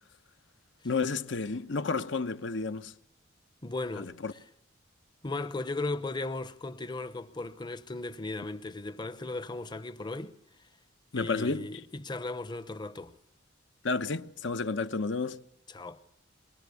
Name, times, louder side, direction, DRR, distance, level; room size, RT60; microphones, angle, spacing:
voice 1, 0.8-2.9 4.0-4.3 11.1-11.7 13.8-15.4, left 4 dB, 65° left, 0.9 m, -31 dB
voice 2, 3.6-4.1 5.2-10.4 11.1-13.2 15.7-16.0, left 2 dB, 20° left, 0.8 m, -36 dB
23.0 x 21.0 x 8.4 m
head